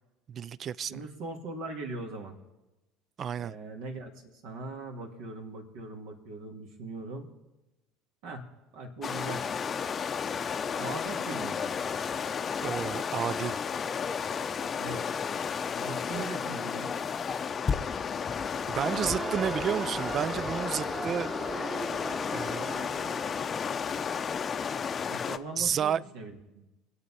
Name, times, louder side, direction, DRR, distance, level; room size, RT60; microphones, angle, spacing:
voice 1, 0.3-1.1 3.2-3.5 12.6-13.6 18.7-21.3 22.3-23.2 25.6-26.0, right 8 dB, 45° right, 0.4 m, -31 dB
voice 2, 0.9-2.4 3.4-7.3 8.2-8.4 8.7-9.4 10.8-11.7 14.8-15.1 15.8-17.0 25.1-26.7, right 3 dB, 70° right, 2.2 m, -40 dB
sound 1, 9.0-25.4, left 6 dB, 35° left, 0.6 m, -33 dB
Crowd, 18.5-23.6, right 2 dB, 25° right, 1.6 m, -38 dB
23.5 x 8.1 x 4.2 m
hypercardioid pair, 75°, 0 cm